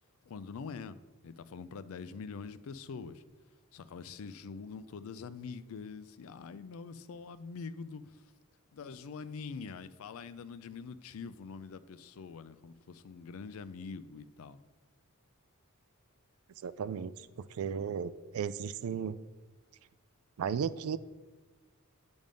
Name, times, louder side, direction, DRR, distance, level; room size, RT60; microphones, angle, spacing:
voice 1, 0.3-1.0 1.2-3.2 3.7-8.3 8.7-14.6, left 5 dB, 70° left, 15 dB, 0.4 m, -44 dB
voice 2, 16.6-19.2 20.4-21.0, right 7 dB, 70° right, 16 dB, 0.3 m, -35 dB
9.1 x 3.5 x 5.2 m, 1.3 s
head